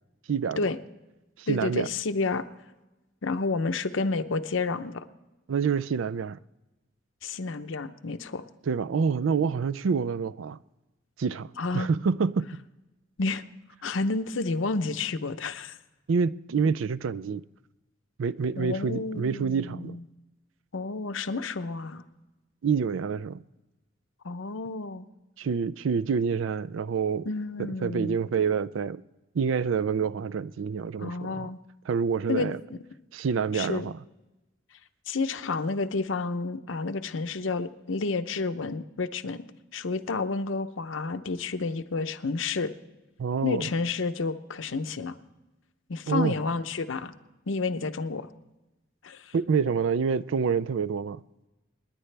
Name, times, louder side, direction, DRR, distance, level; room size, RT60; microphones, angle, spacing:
voice 1, 0.3-0.6 1.4-1.9 5.5-6.4 8.7-10.6 11.2-12.5 16.1-17.4 18.2-20.0 22.6-23.4 25.4-27.3 27.6-29.0 29.3-31.5 31.9-32.6 33.1-34.0 43.2-43.7 46.1-46.4 49.3-51.2, right 5 dB, 85° right, 0.4 m, -27 dB
voice 2, 1.5-2.5 3.2-5.1 7.2-8.4 11.6-11.9 13.2-13.4 13.8-15.8 18.6-20.0 20.7-22.0 24.2-25.1 27.3-28.2 31.0-31.6 32.3-32.8 33.5-33.9 35.1-39.4 39.7-42.7 43.4-45.1 45.9-47.1 47.5-48.3 49.0-49.3, left 3 dB, 80° left, 0.7 m, -30 dB
28.0 x 10.0 x 3.3 m
head